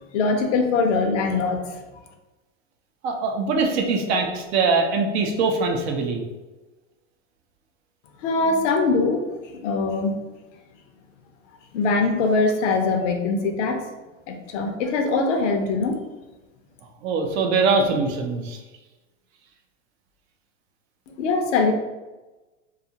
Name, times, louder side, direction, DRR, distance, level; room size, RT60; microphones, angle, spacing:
voice 1, 0.1-1.7 8.2-9.2 9.5-10.1 11.7-13.8 14.3-16.0 21.2-21.7, left 3 dB, 65° left, 4 dB, 0.6 m, -22 dB
voice 2, 3.0-6.2 17.0-18.6, right 4 dB, 55° right, 3 dB, 0.6 m, -22 dB
2.7 x 2.4 x 2.7 m, 1.1 s
supercardioid pair, 125°, 40 cm